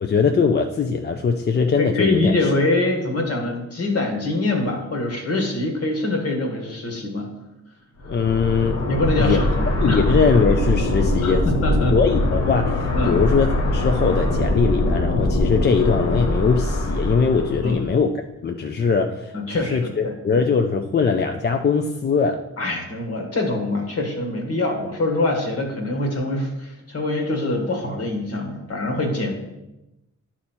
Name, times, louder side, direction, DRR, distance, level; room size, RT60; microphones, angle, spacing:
voice 1, 0.0-2.5 8.1-8.8 9.2-9.4 9.8-11.5 11.9-18.1 18.4-22.4, left 5 dB, 35° left, 5 dB, 0.4 m, -21 dB
voice 2, 1.8-7.3 8.9-10.0 11.2-12.0 12.9-13.2 17.6-17.8 19.3-20.1 22.6-29.3, left 2 dB, 55° left, 2 dB, 1.7 m, -24 dB
sound 1, 8.0-17.9, left 1 dB, 75° left, 1.9 m, -22 dB
11.0 x 4.3 x 4.4 m, 0.97 s
wide cardioid pair, 135°, 29 cm